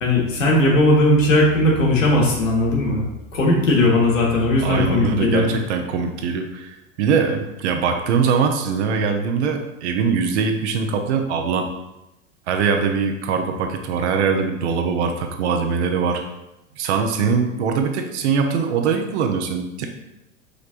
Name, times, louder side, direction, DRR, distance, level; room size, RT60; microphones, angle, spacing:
voice 1, 0.0-3.1 3.3-5.5, left 1 dB, 75° left, -2 dB, 1.4 m, -18 dB
voice 2, 4.6-11.7 12.5-16.2 16.8-19.9, right 5 dB, 60° right, 4 dB, 0.7 m, -22 dB
5.0 x 3.3 x 2.5 m, 0.93 s
hypercardioid pair, 100°, 39 cm